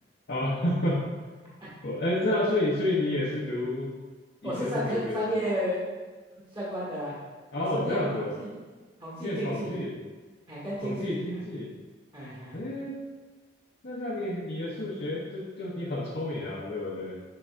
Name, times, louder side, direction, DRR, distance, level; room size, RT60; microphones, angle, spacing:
voice 1, 0.3-1.0 1.4-1.5 1.8-3.9 4.4-5.3 7.5-8.4 9.2-10.0 10.8-11.7 12.5-13.0 13.8-17.2, left 1 dB, 65° left, -5 dB, 0.9 m, -30 dB
voice 2, 4.4-5.8 6.5-7.2 7.6-8.5 9.0-9.7 10.5-11.2 12.1-12.6, equal, 30° right, -7 dB, 1.7 m, -32 dB
7.7 x 4.9 x 2.5 m, 1.3 s
head